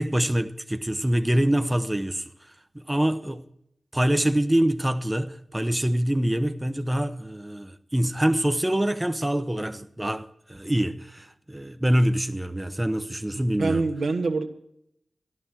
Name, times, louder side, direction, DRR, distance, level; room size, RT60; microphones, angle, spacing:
voice 1, 0.0-2.3 2.7-3.5 3.9-13.8, right 1 dB, 15° right, 0.9 m, -25 dB
voice 2, 13.3-14.5, right 3 dB, 85° right, 1.4 m, -26 dB
13.5 x 11.5 x 7.3 m
cardioid pair, 45°, 0 cm